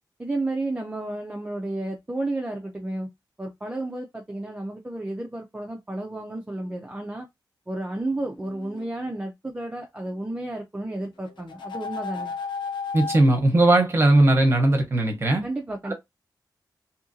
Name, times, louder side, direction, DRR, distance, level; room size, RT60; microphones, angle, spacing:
voice 1, 0.2-3.1 3.4-7.3 7.7-12.3 15.4-15.9, right 2 dB, 15° right, 0.4 m, -32 dB
sound 1, 8.0-8.9 11.3-13.2, left 5 dB, 80° left, 0.6 m, -34 dB
voice 2, 12.9-15.4, right 2 dB, 30° right, 0.8 m, -18 dB
2.8 x 2.5 x 2.6 m
wide cardioid pair, 140°, 8 cm